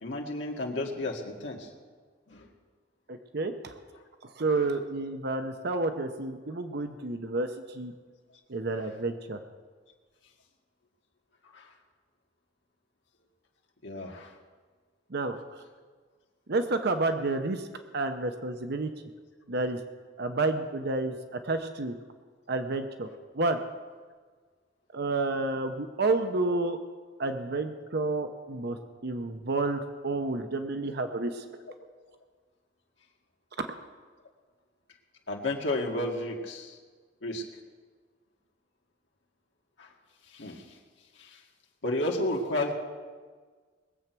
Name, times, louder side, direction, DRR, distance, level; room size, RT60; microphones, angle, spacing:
voice 1, 0.0-1.7 2.3-2.5 11.5-11.7 13.8-14.3 35.3-36.8 37.2-37.4 39.8-39.9 40.3-40.6 41.2-41.4 41.8-42.7, left 1 dB, 80° left, 0 dB, 1.9 m, -32 dB
voice 2, 3.1-3.7 4.2-7.9 8.5-9.4 15.1-15.4 16.5-17.7 17.9-18.9 19.5-19.8 20.2-21.9 22.5-23.1 23.3-23.6 24.9-26.8 27.2-28.8 29.0-31.4 33.6-33.7, right 2 dB, 60° right, 7 dB, 0.8 m, -30 dB
20.5 x 8.0 x 6.1 m, 1.5 s
head